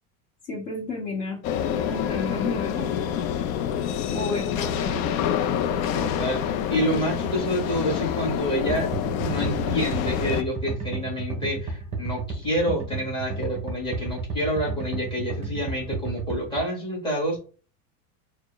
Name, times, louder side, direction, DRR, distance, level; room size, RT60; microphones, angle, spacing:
voice 1, 0.4-1.4 1.8-2.9 4.1-5.1, left 3 dB, 35° left, -4 dB, 1.3 m, -31 dB
sound 1, 1.4-10.4, left 9 dB, 65° left, 0.6 m, -27 dB
voice 2, 5.9-6.4 6.7-8.9 9.2-17.4, equal, 10° left, -3 dB, 1.6 m, -28 dB
sound 2, 8.7-16.6, right 4 dB, 15° right, 0.7 m, -32 dB
4.4 x 2.2 x 3.1 m, 0.37 s
supercardioid pair, 160°, 44 cm